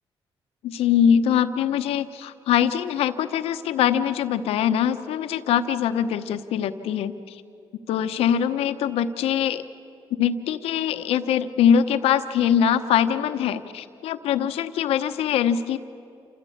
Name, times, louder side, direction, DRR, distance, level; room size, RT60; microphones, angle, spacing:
voice 1, 0.6-7.4 7.9-9.6 10.2-15.8, left 9 dB, 85° left, 10 dB, 0.9 m, -23 dB
27.5 x 14.5 x 8.5 m, 2.6 s
cardioid pair, 70°, 10 cm